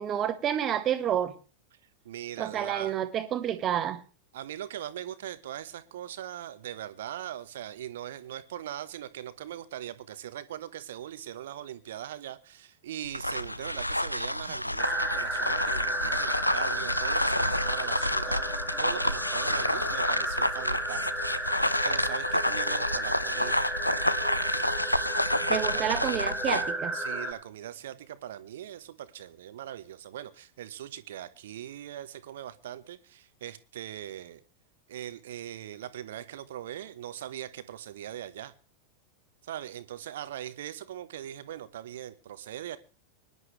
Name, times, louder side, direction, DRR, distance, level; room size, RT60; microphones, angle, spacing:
voice 1, 0.0-1.3 2.4-4.0 25.5-26.9, right 10 dB, 30° right, 1.8 m, -29 dB
voice 2, 2.0-3.0 4.3-21.1 21.6-23.7 25.7-26.0 26.9-34.4 34.9-38.5 39.4-42.8, right 11 dB, 60° right, 1.2 m, -40 dB
sound 1, 13.0-26.7, left 1 dB, 85° left, 0.6 m, -29 dB
sound 2, 14.8-27.3, right 1 dB, 5° left, 2.9 m, -33 dB
24.5 x 11.0 x 3.3 m
figure-of-eight pair, 90°, 0 cm